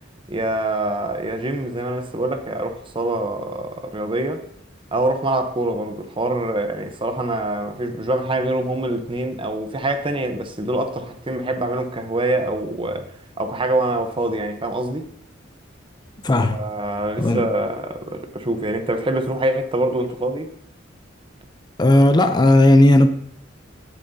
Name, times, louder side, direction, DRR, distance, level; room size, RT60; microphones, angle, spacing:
voice 1, 0.3-4.4 4.9-13.1 13.4-15.0 16.4-20.5, right 1 dB, 25° right, 0.8 m, -25 dB
voice 2, 16.2-16.7 17.2-17.4 21.8-23.1, left 1 dB, 20° left, 0.5 m, -14 dB
16.5 x 7.2 x 2.7 m
head